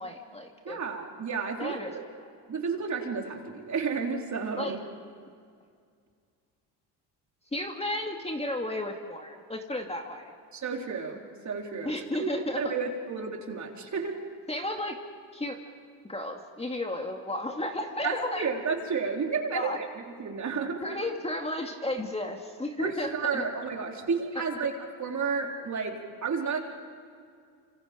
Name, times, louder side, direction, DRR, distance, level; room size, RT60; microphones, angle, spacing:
voice 1, 0.0-0.8 1.6-2.1 4.6-4.8 7.5-10.3 11.8-12.8 14.5-15.0 15.3-15.6 16.0-18.5 19.5-19.8 20.8-23.4, left 1 dB, 15° left, 3 dB, 2.3 m, -33 dB
voice 2, 0.6-2.0 2.5-4.8 10.5-11.9 12.2-12.3 12.6-14.1 18.0-20.9 22.8-24.7 25.0-25.9 26.2-26.6, right 5 dB, 40° right, 1 dB, 3.8 m, -31 dB
28.5 x 26.5 x 5.2 m, 2.2 s
supercardioid pair, 85°, 43 cm